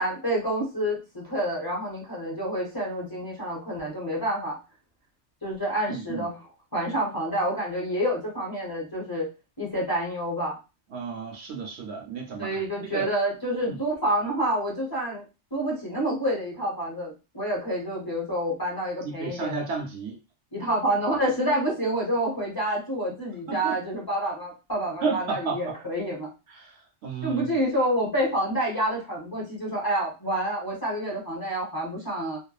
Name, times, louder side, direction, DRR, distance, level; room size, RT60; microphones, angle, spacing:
voice 1, 0.0-4.6 5.4-6.4 6.7-9.3 9.6-10.6 12.4-15.2 15.5-19.7 20.5-26.3 27.2-32.4, right 1 dB, 20° left, 0.8 m, -28 dB
voice 2, 5.9-6.3 10.9-13.1 13.7-13.8 19.0-20.2 23.5-23.8 25.0-25.7 26.5-27.6, right 4 dB, 70° right, 0.8 m, -33 dB
2.8 x 2.2 x 2.3 m
omnidirectional pair, 1.2 m